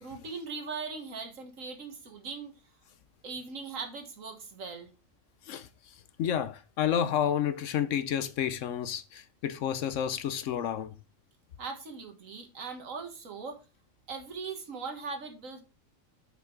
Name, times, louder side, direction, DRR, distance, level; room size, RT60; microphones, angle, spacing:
voice 1, 0.0-2.5 3.2-4.9 11.6-13.6 14.1-15.6, right 4 dB, 75° right, 1.8 m, -40 dB
voice 2, 6.2-10.9, left 9 dB, 70° left, 0.9 m, -30 dB
5.9 x 5.9 x 4.4 m
omnidirectional pair, 1.4 m